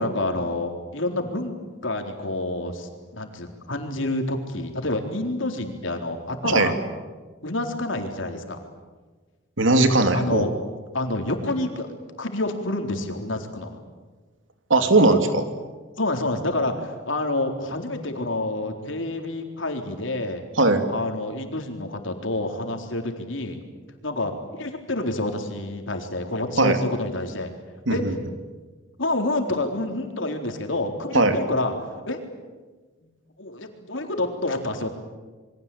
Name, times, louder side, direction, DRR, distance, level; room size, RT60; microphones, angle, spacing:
voice 1, 0.0-1.5 1.8-6.7 7.4-8.6 10.1-10.5 10.9-11.9 12.2-13.8 16.0-20.4 20.9-23.6 24.0-27.5 27.9-28.0 29.0-31.7 32.1-32.2 33.0-33.1 33.4-34.9, left 2 dB, 75° left, 4 dB, 4.0 m, -28 dB
voice 2, 9.6-10.5 14.7-15.4 20.6-20.8 26.6-26.8 27.9-28.1 31.1-31.4, right 2 dB, 75° right, 7 dB, 2.9 m, -18 dB
28.0 x 23.0 x 8.7 m, 1.3 s
head